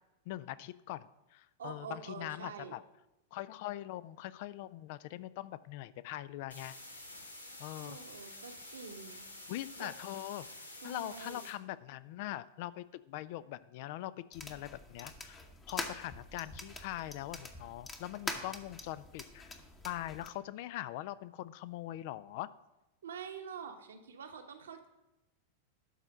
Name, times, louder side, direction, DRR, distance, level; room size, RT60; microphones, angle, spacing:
voice 1, 0.3-2.8 3.3-6.8 7.6-8.0 8.3-8.4 9.5-10.5 10.8-19.5 19.8-22.5, left 15 dB, 50° left, 17 dB, 0.4 m, -42 dB
voice 2, 1.6-2.7 7.8-9.3 9.8-9.9 10.8-11.4 23.0-24.9, right 6 dB, 65° right, 5 dB, 1.0 m, -46 dB
sound 1, 6.5-11.5, left 1 dB, 80° left, 1.1 m, -49 dB
sound 2, 14.3-20.3, left 2 dB, 15° left, 1.0 m, -45 dB
12.0 x 4.3 x 6.1 m, 0.95 s
figure-of-eight pair, 90°, 0 cm